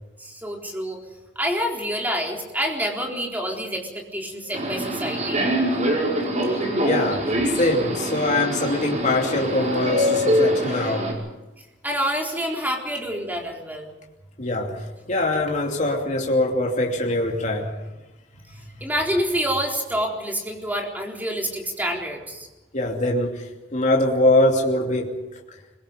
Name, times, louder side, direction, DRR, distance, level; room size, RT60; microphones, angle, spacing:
voice 1, 0.2-1.0 1.4-5.5 11.8-13.9 18.8-22.5, equal, 10° right, 1 dB, 4.0 m, -27 dB
Subway metro underground, 4.5-11.1, equal, 45° right, 4.8 m, -24 dB
voice 2, 6.8-11.1 14.4-17.7 22.7-25.1, left 1 dB, 45° left, 0 dB, 2.9 m, -23 dB
25.5 x 22.5 x 5.3 m, 1.1 s
head